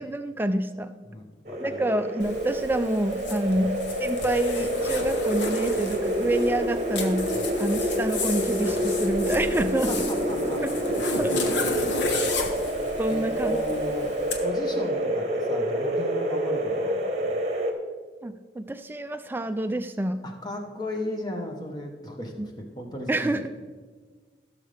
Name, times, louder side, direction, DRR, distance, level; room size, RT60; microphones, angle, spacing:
voice 1, 0.0-0.9 1.6-10.1 10.6-10.7 11.2-11.6 13.0-13.6 18.2-20.2 22.4-22.5 23.1-23.5, right 1 dB, 10° right, 9 dB, 0.4 m, -28 dB
voice 2, 1.1-1.8 3.5-3.7 7.3-7.5 9.9-10.6 11.2-12.2 13.1-14.1 14.4-17.4 20.2-23.5, left 1 dB, 20° left, 2 dB, 1.1 m, -36 dB
sound 1, 1.4-17.7, equal, 35° right, 1.0 m, -28 dB
Zipper (clothing), 2.2-14.4, left 3 dB, 80° left, 1.0 m, -34 dB
16.5 x 6.6 x 3.4 m, 1.5 s
head